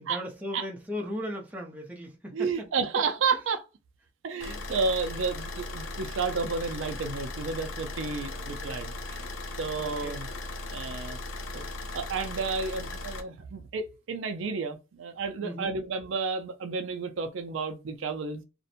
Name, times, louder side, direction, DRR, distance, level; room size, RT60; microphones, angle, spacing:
voice 1, 0.0-2.3 4.5-4.6 8.3-8.8 9.8-10.2 15.4-15.7, left 1 dB, 10° right, 0.6 m, -38 dB
voice 2, 2.3-3.6 4.2-9.3 9.6-10.3 10.7-11.2 11.5-11.7 11.9-18.4, right 4 dB, 70° right, 0.4 m, -31 dB
Car / Idling, 4.4-13.2, left 2 dB, 75° left, 0.5 m, -38 dB
2.5 x 2.1 x 2.7 m
head